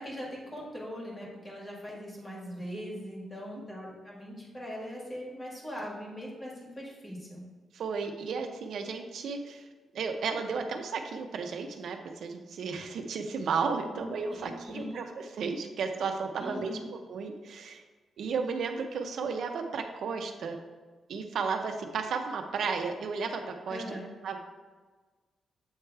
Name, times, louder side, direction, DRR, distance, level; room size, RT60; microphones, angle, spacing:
voice 1, 0.0-7.4 13.9-15.0 16.4-16.8 23.7-24.0, equal, 15° left, -3 dB, 1.7 m, -41 dB
voice 2, 7.7-9.7 9.9-17.8 18.2-20.6 21.1-23.8 24.2-24.4, right 5 dB, 70° right, 5 dB, 0.7 m, -33 dB
8.1 x 3.4 x 4.6 m, 1.4 s
wide cardioid pair, 150°, 0 cm